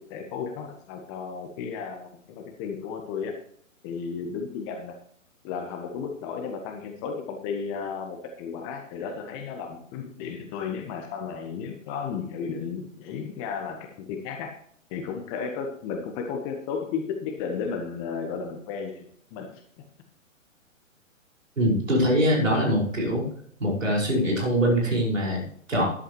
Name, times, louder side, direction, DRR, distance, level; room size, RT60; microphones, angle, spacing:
voice 1, 0.1-2.1 2.3-3.3 3.8-5.0 5.4-14.6 14.9-19.0 19.3-19.6, left 6 dB, 20° left, 4 dB, 1.2 m, -33 dB
voice 2, 21.6-23.3 23.6-25.9, equal, 70° right, -2 dB, 5.7 m, -23 dB
14.0 x 11.5 x 3.2 m, 0.64 s
figure-of-eight pair, 125°, 40 cm